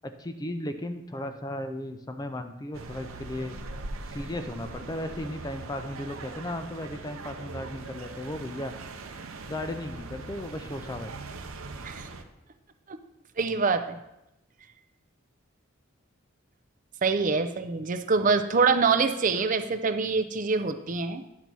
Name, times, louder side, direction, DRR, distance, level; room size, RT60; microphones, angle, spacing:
voice 1, 0.0-3.6 4.1-8.7 9.5-11.1, left 1 dB, 20° left, 8 dB, 0.5 m, -35 dB
sound 1, 2.7-12.2, right 3 dB, 85° right, 0.8 m, -41 dB
voice 2, 13.4-14.0 17.0-21.2, right 4 dB, 40° right, 9 dB, 0.5 m, -25 dB
10.5 x 4.0 x 6.1 m, 0.89 s
head